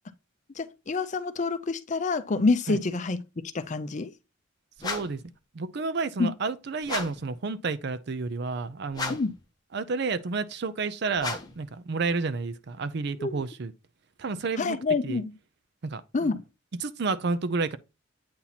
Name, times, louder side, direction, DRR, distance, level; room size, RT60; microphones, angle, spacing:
voice 1, 0.6-3.2 3.5-4.1 6.2-6.3 9.1-9.3 13.2-13.4 14.6-15.3 16.1-16.4, left 3 dB, 35° left, 0.5 m, -27 dB
sound 1, 4.8-5.3 6.8-7.3 8.9-9.4 11.2-11.7, left 3 dB, 20° left, 0.9 m, -34 dB
voice 2, 4.8-5.2 5.5-9.2 9.7-13.7 14.2-14.8 15.0-15.2 15.8-16.4 16.8-17.8, right 4 dB, 55° right, 0.5 m, -30 dB
8.5 x 2.9 x 4.0 m
head